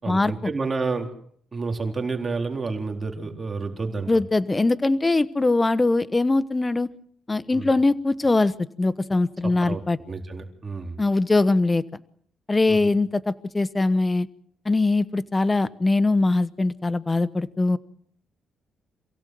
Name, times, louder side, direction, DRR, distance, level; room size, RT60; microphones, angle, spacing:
voice 1, 0.0-1.1 1.5-4.1 7.5-7.7 9.4-9.8 10.1-11.0 12.7-12.9, right 4 dB, 30° right, 3 dB, 4.0 m, -29 dB
voice 2, 4.1-6.9 7.3-10.0 11.0-11.8 12.5-14.3 14.6-17.8, left 2 dB, 20° left, 15 dB, 1.1 m, -22 dB
27.5 x 16.5 x 7.8 m, 0.65 s
cardioid pair, 90°, 0 cm